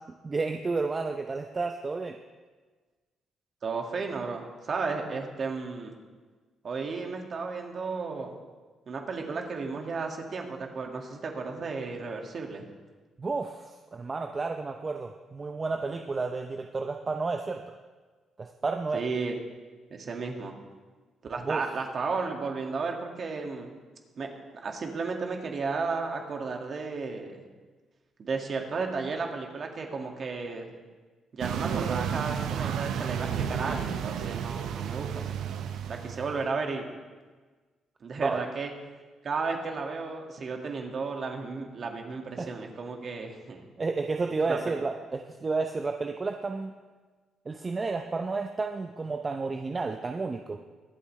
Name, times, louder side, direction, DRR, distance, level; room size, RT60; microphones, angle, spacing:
voice 1, 0.2-2.2 13.2-17.7 18.4-19.1 21.4-21.7 38.2-38.4 42.4-42.5 43.8-46.7 47.5-50.6, right 3 dB, 30° right, 5 dB, 0.6 m, -31 dB
voice 2, 3.6-5.9 6.6-8.3 8.9-12.7 18.9-19.4 19.9-20.5 21.2-23.7 24.2-24.3 24.6-27.4 28.2-30.7 31.3-35.2 35.9-36.9 38.0-38.7 39.2-43.7 44.5-44.8, right 4 dB, 50° right, 2 dB, 1.9 m, -33 dB
sound 1, 31.4-36.4, right 8 dB, 80° right, 0.8 m, -32 dB
23.0 x 8.4 x 3.2 m, 1.4 s
cardioid pair, 90°, 0 cm